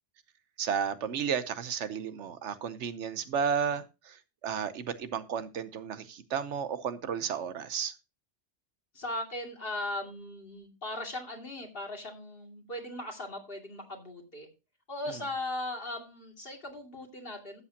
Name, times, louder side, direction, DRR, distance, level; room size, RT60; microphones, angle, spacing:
voice 1, 0.6-7.9 15.1-15.2, right 7 dB, 90° right, 1.2 m, -33 dB
voice 2, 8.9-14.5 14.9-17.6, left 1 dB, 55° left, 2.8 m, -38 dB
12.5 x 8.5 x 2.8 m
omnidirectional pair, 1.2 m